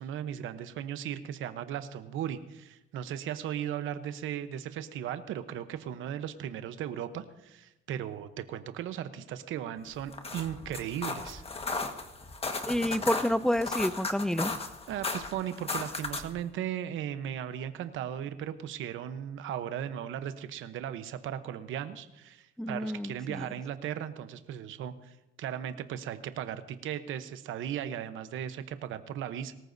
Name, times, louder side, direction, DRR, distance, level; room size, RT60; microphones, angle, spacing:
voice 1, 0.0-11.4 14.9-29.5, right 10 dB, 85° right, 10 dB, 0.9 m, -37 dB
sound 1, 10.0-16.4, left 3 dB, 30° left, 1.5 m, -36 dB
voice 2, 12.7-14.5 22.6-23.4, equal, 5° left, 14 dB, 0.5 m, -29 dB
23.0 x 14.0 x 2.7 m, 0.94 s
cardioid pair, 90°, 20 cm